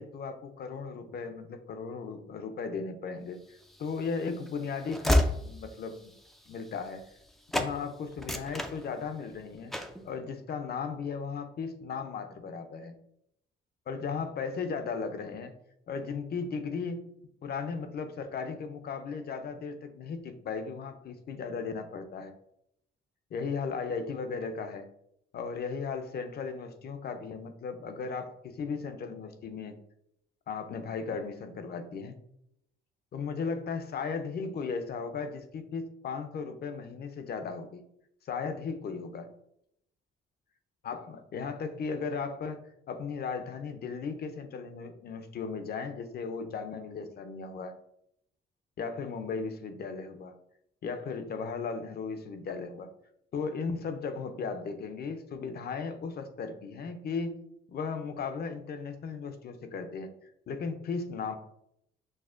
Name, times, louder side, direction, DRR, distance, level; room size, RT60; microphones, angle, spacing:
voice 1, 0.0-3.4 3.8-6.1 6.5-7.1 7.5-9.7 10.0-13.0 13.9-15.6 15.9-17.0 17.4-22.3 23.3-24.9 25.3-29.8 30.5-32.2 33.1-37.8 38.2-39.3 40.8-42.6 42.9-47.8 48.8-50.3 50.8-52.9 53.3-57.4 57.7-61.4, left 5 dB, 50° left, 8 dB, 0.5 m, -36 dB
Train / Slam, 3.6-7.3 7.5-7.7 8.1-9.3 9.7-10.0, left 1 dB, ahead, 0.3 m, -31 dB
6.2 x 2.1 x 2.5 m, 0.77 s
cardioid pair, 90°, 20 cm